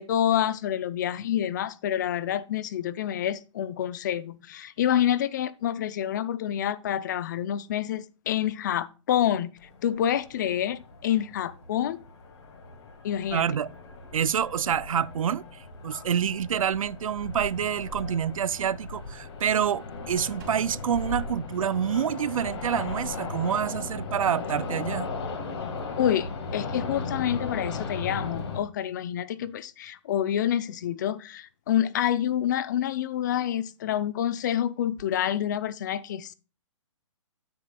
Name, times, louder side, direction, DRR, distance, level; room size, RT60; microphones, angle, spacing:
voice 1, 0.0-9.5 9.8-12.0 13.0-13.5 26.0-36.3, left 10 dB, 35° left, 0.5 m, -27 dB
sound 1, 9.6-28.6, left 4 dB, 50° left, 1.8 m, -37 dB
voice 2, 13.3-13.7 14.1-25.1, right 8 dB, 85° right, 0.4 m, -27 dB
Drum, 20.4-22.3, left 2 dB, 40° right, 3.0 m, -47 dB
9.2 x 9.0 x 2.3 m
hypercardioid pair, 155°, 17 cm